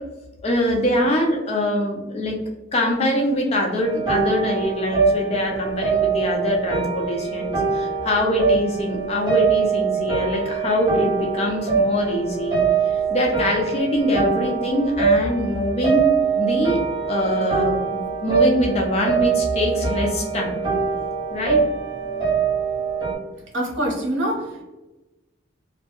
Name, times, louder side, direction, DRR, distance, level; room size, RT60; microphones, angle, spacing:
voice 1, 0.4-2.4 2.7-16.8 17.1-20.6 21.3-21.6, left 1 dB, 30° left, 0 dB, 0.3 m, -23 dB
sound 1, 3.8-23.1, right 5 dB, 20° right, 0.9 m, -23 dB
voice 2, 23.5-24.6, right 1 dB, 70° right, -2 dB, 0.8 m, -25 dB
2.2 x 2.1 x 2.8 m, 1.1 s
head